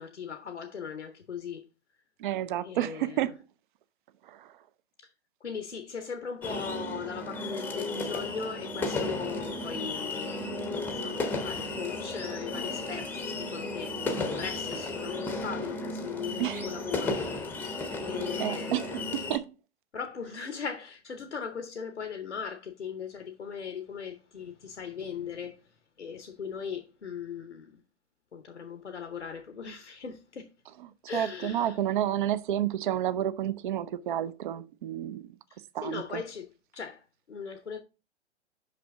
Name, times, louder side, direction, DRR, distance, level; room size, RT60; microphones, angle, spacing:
voice 1, 0.0-1.6 2.6-3.3 5.0-5.1 5.4-19.1 19.9-27.8 28.3-30.5 31.1-31.8 35.5-37.8, left 6 dB, 85° left, 0.8 m, -39 dB
voice 2, 2.2-3.4 4.3-4.5 16.4-16.7 17.6-17.7 18.4-19.5 30.8-35.2 35.7-36.2, right 11 dB, 45° right, 0.5 m, -31 dB
sound 1, 6.4-19.4, left 2 dB, 5° left, 0.7 m, -34 dB
5.9 x 5.6 x 3.5 m
figure-of-eight pair, 115°, 34 cm